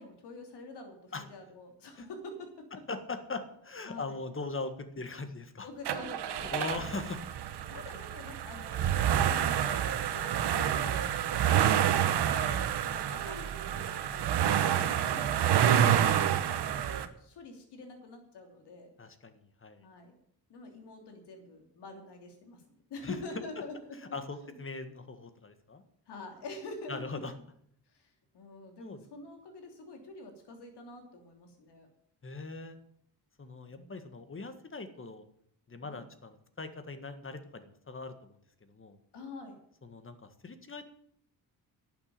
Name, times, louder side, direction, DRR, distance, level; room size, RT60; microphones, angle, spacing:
voice 1, 0.0-2.5 3.8-4.2 5.6-7.1 7.7-12.0 12.4-18.9 19.8-20.2 20.5-24.2 24.4-24.6 26.1-27.2 27.9-31.9 33.7-33.9 35.8-36.0 39.1-39.6, left 2 dB, 90° left, 4 dB, 3.2 m, -47 dB
voice 2, 2.9-5.7 6.3-7.2 12.2-12.8 19.0-19.8 23.0-23.2 24.1-25.8 26.9-27.3 28.8-29.1 32.2-32.8 33.4-35.2 35.7-39.0 39.8-40.9, left 3 dB, 30° left, 9 dB, 1.7 m, -41 dB
sound 1, 5.9-17.1, right 10 dB, 85° right, 1.1 m, -28 dB
11.5 x 7.5 x 8.9 m, 0.68 s
cardioid pair, 100°, 40 cm